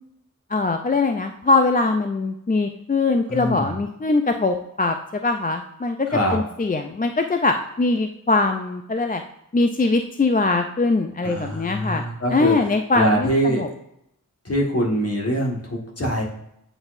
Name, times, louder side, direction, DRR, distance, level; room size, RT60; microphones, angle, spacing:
voice 1, 0.5-9.2 9.5-12.0 12.3-13.7, left 3 dB, 25° left, 5 dB, 0.4 m, -22 dB
voice 2, 3.3-3.7 6.1-6.4 11.2-12.5 12.9-13.6 14.4-16.2, equal, 45° left, -1 dB, 1.6 m, -23 dB
8.8 x 4.1 x 2.6 m, 0.78 s
wide cardioid pair, 90°, 34 cm